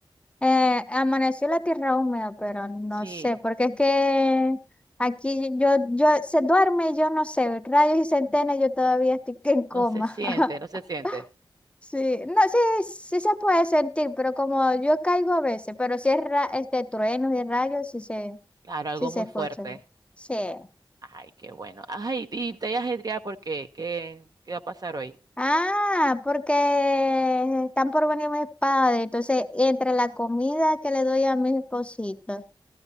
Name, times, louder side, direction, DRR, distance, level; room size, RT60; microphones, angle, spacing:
voice 1, 0.4-4.6 5.0-10.5 11.0-11.2 11.9-18.4 19.0-19.7 20.3-20.7 25.4-32.4, left 1 dB, 15° left, 9 dB, 0.6 m, -24 dB
voice 2, 3.0-3.3 9.7-11.2 18.6-19.8 21.0-25.2, right 3 dB, 45° right, 8 dB, 0.6 m, -33 dB
15.0 x 13.5 x 2.8 m, 0.28 s
wide cardioid pair, 95°, 9 cm